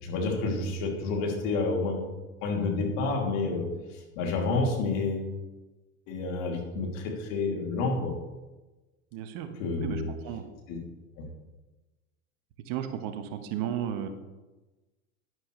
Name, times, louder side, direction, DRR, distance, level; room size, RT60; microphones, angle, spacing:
voice 1, 0.0-2.0 2.4-5.3 6.1-8.1 9.6-10.1 10.7-10.8 11.2-11.3, left 3 dB, 60° left, 1 dB, 2.9 m, -29 dB
voice 2, 9.1-10.4 12.6-14.1, right 10 dB, 50° right, 8 dB, 1.3 m, -34 dB
11.0 x 11.0 x 3.2 m, 1.1 s
hypercardioid pair, 90°, 43 cm